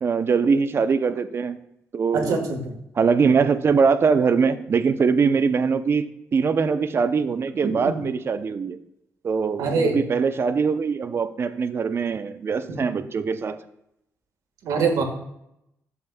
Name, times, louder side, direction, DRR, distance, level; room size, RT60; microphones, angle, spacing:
voice 1, 0.0-1.6 1.9-2.4 3.0-8.8 9.2-13.6, right 5 dB, 45° right, 11 dB, 0.6 m, -22 dB
voice 2, 2.1-2.7 7.6-8.0 9.6-9.9 12.7-12.8 14.6-15.0, right 4 dB, 85° right, 3 dB, 1.6 m, -24 dB
12.0 x 7.2 x 2.3 m, 0.81 s
cardioid pair, 95°, 6 cm